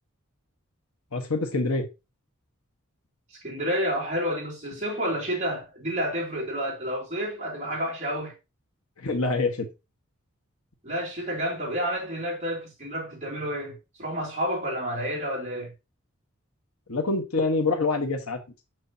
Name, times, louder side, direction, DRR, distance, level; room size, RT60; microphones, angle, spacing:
voice 1, 1.1-1.9 9.0-9.7 16.9-18.4, left 3 dB, 85° left, 1.3 m, -25 dB
voice 2, 3.3-8.3 10.8-15.7, equal, 30° right, 2.5 m, -30 dB
6.5 x 6.2 x 2.8 m
head